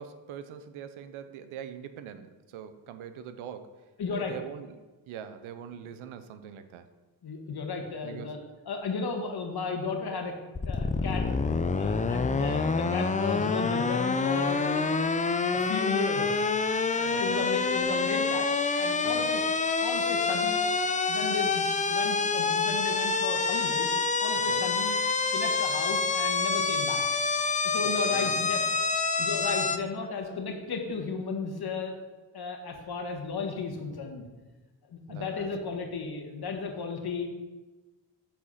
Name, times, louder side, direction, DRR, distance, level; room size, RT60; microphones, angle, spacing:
voice 1, 0.0-3.8 4.1-4.8 5.1-6.9 8.0-8.3 17.1-17.5 19.0-19.3 24.5-24.6 27.8-28.8 35.1-35.5, right 8 dB, 80° right, 10 dB, 0.7 m, -43 dB
voice 2, 4.0-4.3 7.2-8.4 8.7-10.3 10.6-11.3 11.7-14.8 15.5-16.3 16.9-18.5 18.8-19.4 19.8-20.6 21.1-24.9 25.3-27.0 27.6-28.6 29.2-31.9 32.3-34.2 34.9-37.3, left 4 dB, 50° left, 3 dB, 1.6 m, -34 dB
sound 1, 10.5-29.8, left 4 dB, 15° left, 0.5 m, -27 dB
7.6 x 4.4 x 5.5 m, 1.2 s
supercardioid pair, 65°, 48 cm